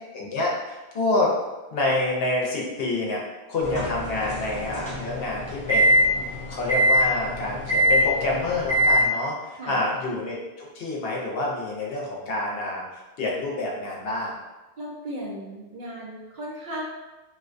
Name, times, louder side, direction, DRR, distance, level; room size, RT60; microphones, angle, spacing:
voice 1, 0.1-1.3 1.7-3.2 3.5-14.4, left 2 dB, 70° left, -3 dB, 0.8 m, -28 dB
sound 1, 3.6-9.1, equal, 10° left, 0.6 m, -23 dB
voice 2, 14.8-16.8, right 1 dB, 55° right, -5 dB, 0.6 m, -36 dB
2.4 x 2.2 x 2.4 m, 1.1 s
omnidirectional pair, 1.1 m